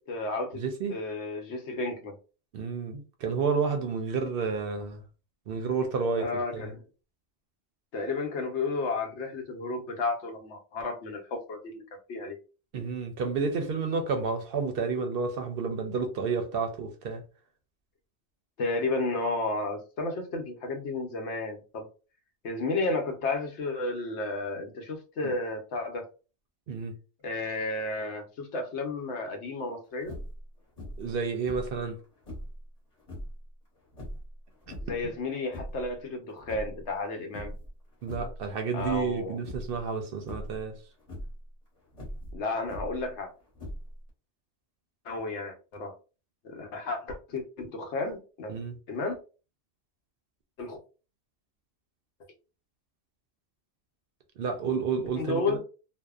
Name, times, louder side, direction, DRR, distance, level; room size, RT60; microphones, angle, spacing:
voice 1, 0.0-0.6 0.9-2.1 6.2-6.8 7.9-12.4 18.6-21.9 22.4-26.1 27.2-30.2 34.8-37.5 38.7-39.4 42.3-43.3 45.0-45.9 46.4-48.5 48.9-49.2 50.6-50.8 55.2-55.6, left 3 dB, 80° left, 1.0 m, -32 dB
voice 2, 0.5-1.0 2.5-5.0 5.5-6.7 12.7-17.2 25.2-25.3 26.7-26.9 31.0-32.0 35.0-35.1 38.0-40.8 48.5-48.8 54.4-55.6, right 5 dB, 65° right, 0.7 m, -30 dB
sound 1, 30.0-30.4 30.8-31.1 31.4-32.6 33.0-33.4 33.9-35.0 35.4-35.9 36.3-37.1 37.3-37.7 38.0-38.4 38.8-39.1 39.4-39.8 40.3-40.6 41.0-41.4 41.9-43.1 43.5-44.1, equal, 35° left, 1.0 m, -40 dB
2.6 x 2.1 x 2.3 m
omnidirectional pair, 1.2 m